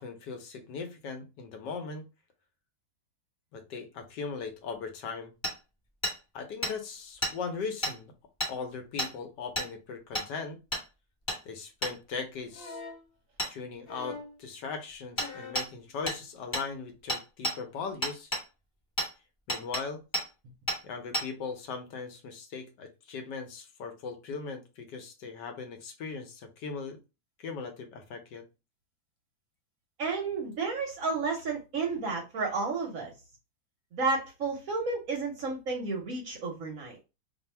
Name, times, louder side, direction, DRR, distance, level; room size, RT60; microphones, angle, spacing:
voice 1, 0.0-2.1 3.5-5.3 6.3-8.1 8.5-10.6 11.4-12.8 13.5-18.3 19.5-20.0 20.8-27.0 27.4-28.4, left 5 dB, 70° left, 5 dB, 1.3 m, -39 dB
Hammer, 5.4-5.5 6.0-6.2 6.6-6.7 7.2-7.3 7.8-8.0 8.4-8.5 9.0-9.1 9.6-9.7 10.2-10.3 10.7-10.8 11.3-11.4 11.8-11.9 13.4-13.5 15.2-15.3 15.6-15.7 16.1-16.2 16.5-16.7 17.1-17.6 18.0-18.4 19.0-19.1 19.5-19.8 20.1-20.3 20.7-20.8 21.1-21.3, equal, 15° left, 1.3 m, -31 dB
sound 1, 12.5-13.1 13.9-14.4 15.2-15.7 16.9-17.0, left 4 dB, 50° left, 0.7 m, -43 dB
voice 2, 30.0-33.1 33.9-37.0, right 4 dB, 65° right, 2 dB, 0.9 m, -31 dB
2.7 x 2.6 x 4.2 m, 0.28 s
omnidirectional pair, 2.0 m